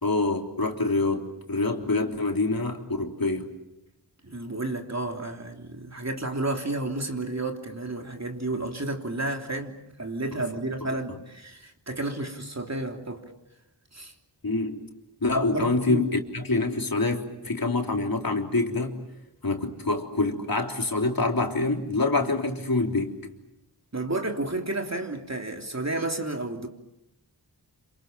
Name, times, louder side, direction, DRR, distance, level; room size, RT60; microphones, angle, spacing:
voice 1, 0.0-3.5 14.4-14.8 15.2-19.0 19.4-23.2, left 3 dB, 55° left, 3.6 m, -26 dB
voice 2, 4.2-13.2 13.9-14.1 15.5-16.1 23.9-26.7, right 2 dB, 40° right, 3.3 m, -31 dB
28.0 x 26.5 x 7.4 m
wide cardioid pair, 45°, 42 cm